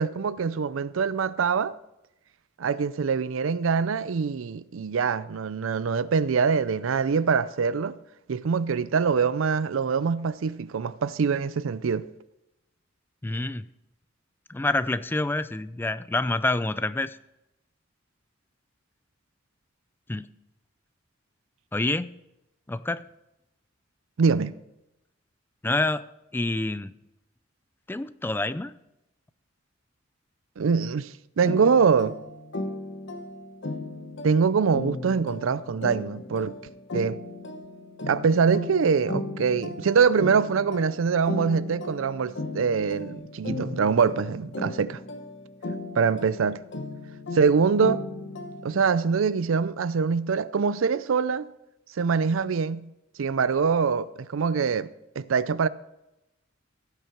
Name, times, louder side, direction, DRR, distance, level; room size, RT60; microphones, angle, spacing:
voice 1, 0.0-1.8 2.6-8.0 8.3-12.1 24.2-24.5 30.6-32.2 34.2-36.6 36.9-37.2 38.1-45.0 46.0-46.6 47.3-48.0 48.6-51.5 52.0-52.9 53.2-54.9 55.2-55.7, right 5 dB, 85° right, 0.5 m, -24 dB
voice 2, 13.2-13.7 14.5-17.2 20.1-20.3 21.7-22.1 22.7-23.1 25.6-26.1 26.3-26.9 27.9-28.7, left 2 dB, 10° left, 0.3 m, -27 dB
sound 1, 31.4-48.9, left 2 dB, 65° left, 1.1 m, -36 dB
16.5 x 6.6 x 4.5 m
head